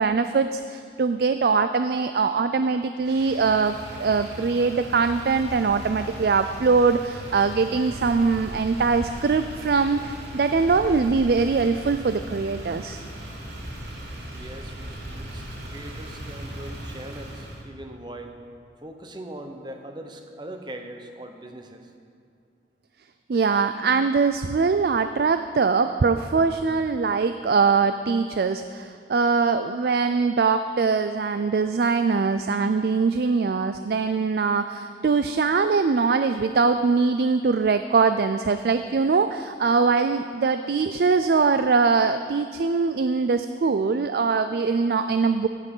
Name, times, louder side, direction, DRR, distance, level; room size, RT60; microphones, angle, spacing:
voice 1, 0.0-13.0 23.3-45.5, right 4 dB, 60° right, 10 dB, 0.4 m, -22 dB
Motor vehicle (road), 3.0-17.6, right 1 dB, 85° right, 2.4 m, -38 dB
voice 2, 14.3-18.4 18.8-21.9, right 1 dB, 25° right, 4 dB, 1.0 m, -41 dB
15.5 x 9.1 x 5.5 m, 2.3 s
head